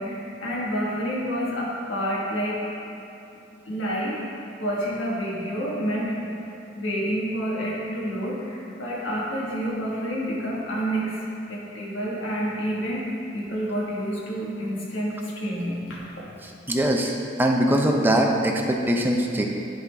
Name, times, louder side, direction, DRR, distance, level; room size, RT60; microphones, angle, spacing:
voice 1, 0.0-2.6 3.6-4.2 4.6-6.4 6.7-11.2 11.5-16.2, equal, 70° left, -5 dB, 1.5 m, -28 dB
voice 2, 16.7-19.4, right 1 dB, 10° right, 1 dB, 0.5 m, -22 dB
10.5 x 3.8 x 3.4 m, 2.9 s
head